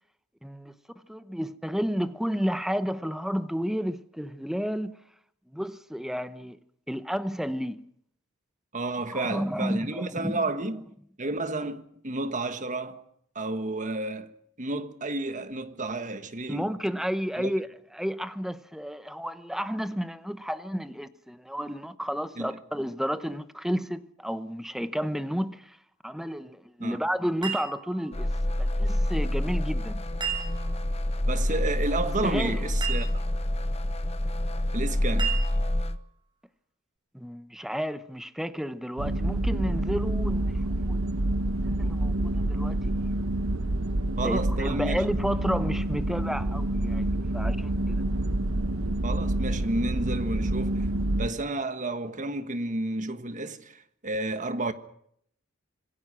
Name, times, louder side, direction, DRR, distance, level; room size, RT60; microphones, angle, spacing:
voice 1, 0.4-0.7 1.1-5.0 5.5-6.6 6.9-7.8 9.1-10.4 16.5-17.7 17.9-25.8 26.0-28.3 28.6-30.1 32.2-32.6 37.1-40.5 40.9-41.0 41.6-43.1 44.2-48.0, equal, ahead, 1.0 m, -31 dB
voice 2, 8.7-10.9 11.2-13.0 13.3-14.3 14.6-16.7 17.4-17.5 22.4-22.5 26.8-27.0 31.3-33.1 34.7-35.4 44.2-44.9 49.0-50.9 51.2-54.7, right 2 dB, 40° right, 1.4 m, -31 dB
sound 1, 27.4-28.4 30.2-31.0 32.8-33.5 35.2-36.0, right 7 dB, 25° right, 7.4 m, -35 dB
sound 2, 28.1-36.0, left 1 dB, 30° left, 1.0 m, -27 dB
sound 3, 39.0-51.3, right 1 dB, 75° right, 1.1 m, -27 dB
26.5 x 20.0 x 6.2 m
head